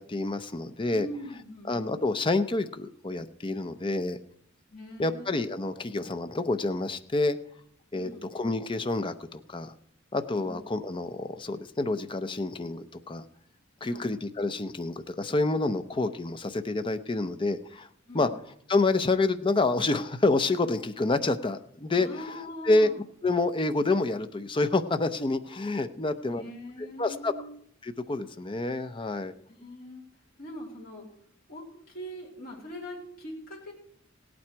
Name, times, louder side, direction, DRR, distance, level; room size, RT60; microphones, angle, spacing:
voice 1, 0.0-1.1 1.7-4.2 5.0-7.4 7.9-9.7 10.1-13.2 13.8-17.9 18.1-18.3 18.7-22.1 22.6-22.9 23.2-26.4 27.0-27.3 27.8-29.3, left 2 dB, 25° left, 9 dB, 0.6 m, -28 dB
voice 2, 0.9-2.0 4.7-5.5 7.9-8.3 10.3-10.6 13.8-14.1 18.1-18.4 21.9-23.0 26.3-27.6 29.6-30.0 30.4-31.1 31.5-33.7, equal, 50° left, -4 dB, 3.2 m, -42 dB
17.0 x 8.8 x 4.6 m, 0.69 s
head